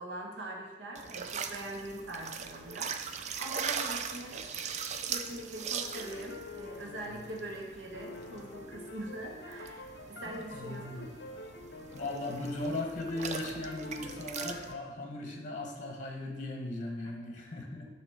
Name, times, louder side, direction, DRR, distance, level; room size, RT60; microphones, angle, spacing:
voice 1, 0.0-4.5 5.0-11.1, right 1 dB, 80° right, -1 dB, 1.0 m, -42 dB
sound 1, 1.0-14.7, right 6 dB, 40° right, 0.3 m, -41 dB
sound 2, 5.8-14.8, left 2 dB, 60° left, 0.6 m, -47 dB
voice 2, 10.3-11.1 11.9-17.9, left 2 dB, 40° left, 2 dB, 0.9 m, -38 dB
6.9 x 3.0 x 5.8 m, 1.2 s
head